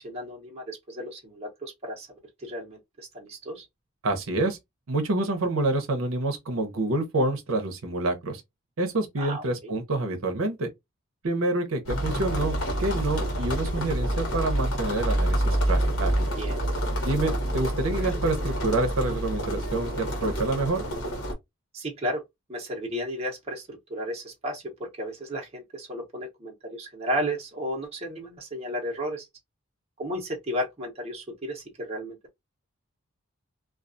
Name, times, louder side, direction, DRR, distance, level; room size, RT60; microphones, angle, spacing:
voice 1, 0.0-2.1 2.4-3.7 9.2-9.7 16.4-16.6 21.7-22.2 22.5-29.3 30.0-32.2, equal, 30° right, 0.8 m, -33 dB
voice 2, 4.0-4.6 4.9-8.4 8.8-10.7 11.2-16.3 17.0-20.8, right 2 dB, 75° right, 0.6 m, -27 dB
sound 1, 11.9-21.3, right 1 dB, 85° left, 1.0 m, -27 dB
2.3 x 2.3 x 2.5 m
head